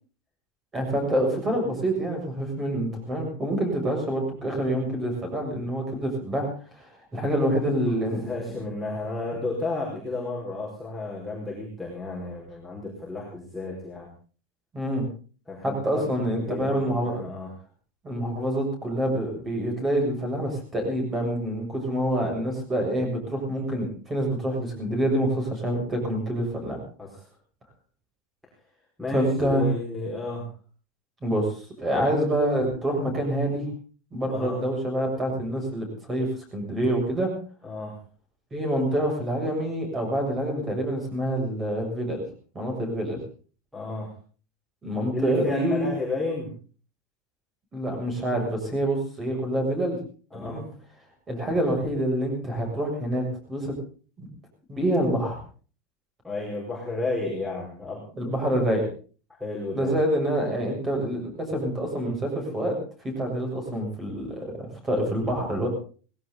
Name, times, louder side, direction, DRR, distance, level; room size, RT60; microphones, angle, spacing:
voice 1, 0.7-6.5 7.1-8.3 14.7-15.1 15.6-17.2 18.0-26.8 29.1-29.6 31.2-31.5 31.8-33.7 34.1-37.3 38.5-42.2 42.5-43.2 44.8-45.9 47.7-50.0 50.3-50.6 51.3-53.8 54.2-54.3 54.7-55.4 58.2-58.9 59.7-62.8 63.0-65.7, right 1 dB, 15° right, 3 dB, 7.1 m, -26 dB
voice 2, 7.8-14.1 15.5-16.0 16.3-17.5 27.0-27.2 29.0-30.5 31.9-32.1 34.3-34.6 37.6-37.9 43.7-44.1 45.1-46.5 50.3-50.7 56.2-58.3 59.4-59.9, left 2 dB, ahead, -3 dB, 5.1 m, -32 dB
19.0 x 17.0 x 4.0 m, 0.40 s
supercardioid pair, 165°, 0 cm